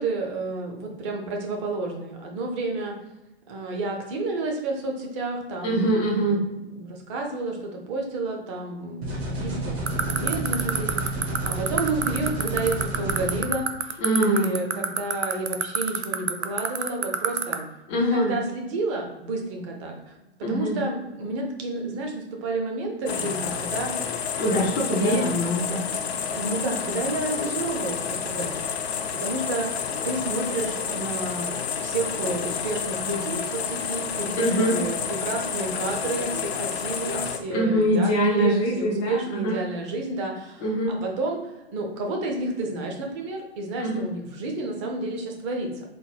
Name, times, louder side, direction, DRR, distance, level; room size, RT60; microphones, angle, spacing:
voice 1, 0.0-2.9 3.5-6.4 6.8-17.6 18.0-24.0 24.9-25.3 26.3-41.4 41.7-45.8, right 2 dB, 30° right, 1 dB, 0.6 m, -31 dB
voice 2, 5.6-6.4 14.0-14.5 17.9-18.3 20.4-20.8 24.4-25.8 34.4-34.7 37.5-39.6 40.6-40.9 43.8-44.0, right 1 dB, 15° left, -3 dB, 0.4 m, -23 dB
sound 1, 9.0-13.4, right 2 dB, 65° right, 1.3 m, -30 dB
sound 2, 9.9-17.5, right 8 dB, 85° right, 0.5 m, -22 dB
sound 3, 23.1-37.4, left 7 dB, 65° left, 0.5 m, -30 dB
3.9 x 2.0 x 3.3 m, 0.99 s
figure-of-eight pair, 115°, 34 cm